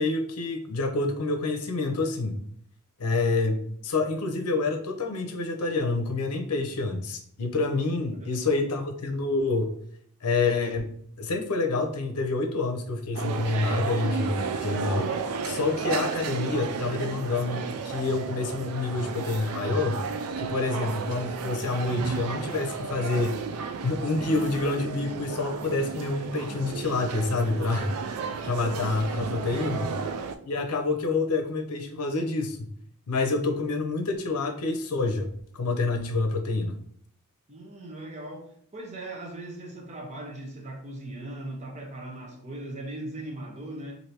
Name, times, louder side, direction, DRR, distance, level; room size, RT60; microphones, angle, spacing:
voice 1, 0.0-2.4 3.0-9.7 10.2-10.9 11.2-15.1 15.4-20.0 20.4-23.4 23.8-27.9 28.4-29.9 30.4-32.6 33.1-36.8, left 3 dB, 85° left, 5 dB, 0.6 m, -27 dB
voice 2, 8.1-8.6 29.4-30.1 37.5-44.0, right 1 dB, 30° right, 0 dB, 0.7 m, -39 dB
sound 1, 13.1-30.4, right 5 dB, 75° right, 0.3 m, -33 dB
3.2 x 2.6 x 2.8 m, 0.62 s
head